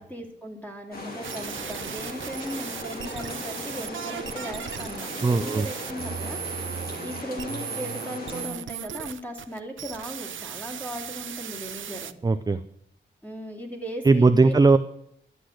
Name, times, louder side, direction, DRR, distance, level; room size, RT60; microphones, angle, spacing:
voice 1, 0.0-6.8 7.0-12.1 13.2-14.6, equal, 10° left, 1 dB, 2.5 m, -37 dB
sound 1, 0.9-8.5, left 1 dB, 50° left, 3.0 m, -38 dB
sound 2, 1.2-12.1, right 8 dB, 85° right, 0.6 m, -37 dB
voice 2, 5.2-5.7 12.2-12.6 14.0-14.8, right 3 dB, 20° right, 10 dB, 0.4 m, -18 dB
11.5 x 8.2 x 7.7 m, 0.75 s
wide cardioid pair, 110°, 20 cm